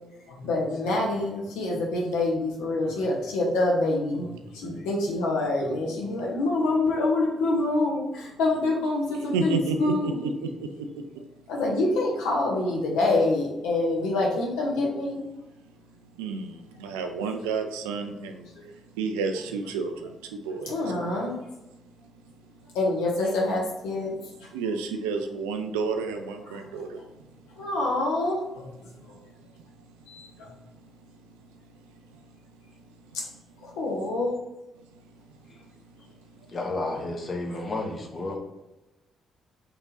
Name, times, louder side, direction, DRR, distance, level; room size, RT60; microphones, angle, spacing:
voice 1, 0.4-4.3 4.5-10.2 11.5-15.2 20.7-21.3 22.7-24.1 27.6-28.7 30.1-30.3 33.8-34.3, left 2 dB, 70° left, -2 dB, 0.9 m, -26 dB
voice 2, 9.3-10.7 16.2-16.5 16.8-18.4 19.0-20.8 24.5-27.0, right 4 dB, 75° right, 6 dB, 0.4 m, -30 dB
voice 3, 36.5-38.4, left 2 dB, 45° left, 0 dB, 1.0 m, -31 dB
3.5 x 2.9 x 4.0 m, 0.98 s
figure-of-eight pair, 40°, 0 cm